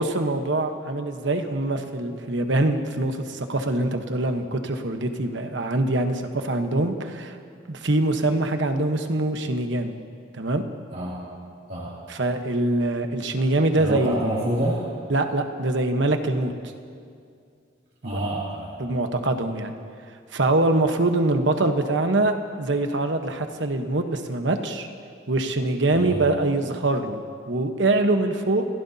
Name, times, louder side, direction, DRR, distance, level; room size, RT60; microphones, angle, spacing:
voice 1, 0.0-7.4 7.7-10.0 10.3-10.6 12.1-14.2 15.1-16.5 18.0-18.2 18.8-19.7 20.3-24.9 25.3-28.7, right 2 dB, 75° right, 6 dB, 1.1 m, -24 dB
voice 2, 13.8-14.9 18.0-18.7 25.9-26.2, right 1 dB, 50° right, -9 dB, 2.8 m, -27 dB
27.0 x 16.0 x 2.8 m, 2.3 s
head